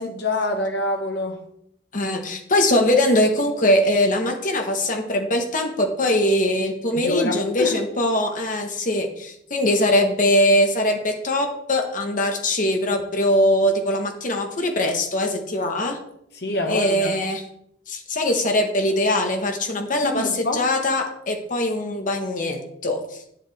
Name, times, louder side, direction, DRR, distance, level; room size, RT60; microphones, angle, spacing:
voice 1, 0.0-1.4 6.9-7.8 16.3-17.1 20.0-20.6, left 2 dB, 65° left, 1.5 m, -26 dB
voice 2, 1.9-16.0 16.7-17.4 17.9-23.2, left 1 dB, 45° left, 1.5 m, -22 dB
9.9 x 7.4 x 3.6 m
head